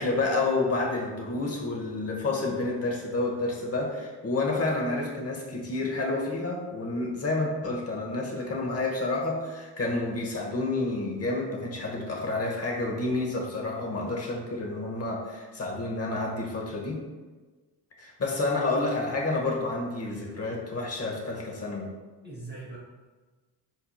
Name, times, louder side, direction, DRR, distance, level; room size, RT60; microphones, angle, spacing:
voice 1, 0.0-17.0 18.0-21.9, left 2 dB, 30° left, -1 dB, 0.9 m, -29 dB
voice 2, 20.0-20.5 22.2-22.8, right 2 dB, 20° right, -5 dB, 0.8 m, -42 dB
4.4 x 2.8 x 2.3 m, 1.3 s
supercardioid pair, 60°, 45 cm